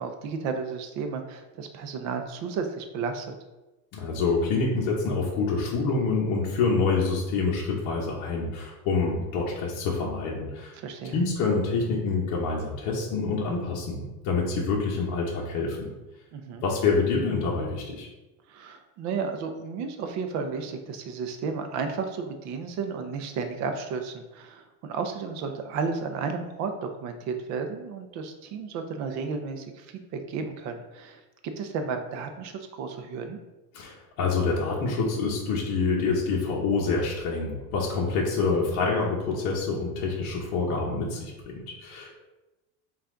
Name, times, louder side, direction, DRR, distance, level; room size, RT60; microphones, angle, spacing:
voice 1, 0.0-3.3 10.8-11.2 16.3-16.6 18.5-33.4, right 5 dB, 40° right, 6 dB, 0.5 m, -33 dB
voice 2, 3.9-10.7 11.1-15.9 16.6-18.1 33.7-42.1, left 4 dB, 50° left, -3 dB, 1.0 m, -27 dB
5.6 x 2.5 x 3.8 m, 1.1 s
cardioid pair, 160°, 42 cm